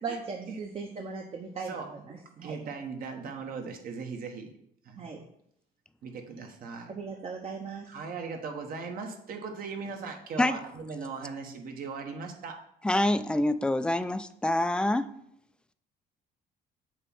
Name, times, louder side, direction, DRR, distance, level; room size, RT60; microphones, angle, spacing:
voice 1, 0.0-2.6 5.0-5.2 6.9-7.9, right 5 dB, 35° right, 1 dB, 0.8 m, -38 dB
voice 2, 2.4-4.5 4.8-5.3 6.0-6.9 7.9-12.6, right 5 dB, 60° right, 4 dB, 1.3 m, -38 dB
voice 3, 12.8-15.1, left 1 dB, 5° left, 12 dB, 0.4 m, -26 dB
7.7 x 3.1 x 6.1 m, 0.71 s
cardioid pair, 110°, 17 cm